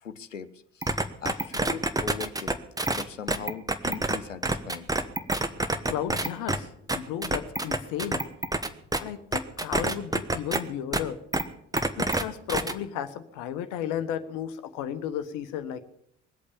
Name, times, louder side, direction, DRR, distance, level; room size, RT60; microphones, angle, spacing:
voice 1, 0.0-2.6 2.9-4.9, left 6 dB, 85° left, 13 dB, 0.7 m, -39 dB
sound 1, 0.8-4.2 4.4-6.6 6.9-9.0 9.3-10.6 10.9-11.0 11.3-11.4 11.7-12.2 12.5-12.7, right 2 dB, 10° right, 1.2 m, -26 dB
voice 2, 5.5-8.3 9.0-11.2 11.9-15.8, left 9 dB, 55° left, 10 dB, 1.3 m, -34 dB
21.0 x 8.6 x 7.1 m, 0.73 s
figure-of-eight pair, 50°, 37 cm